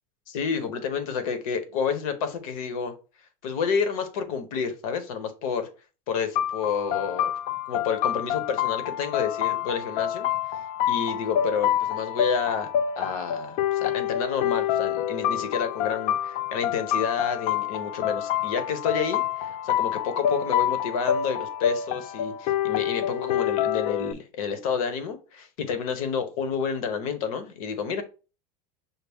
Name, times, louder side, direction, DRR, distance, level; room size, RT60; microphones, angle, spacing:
voice 1, 0.3-2.9 3.4-5.7 6.1-7.3 7.7-10.3 10.9-12.7 13.0-28.0, left 6 dB, 80° left, 1.0 m, -29 dB
sound 1, 6.4-24.1, left 10 dB, 45° left, 0.4 m, -27 dB
5.7 x 2.1 x 3.4 m
supercardioid pair, 155°, 18 cm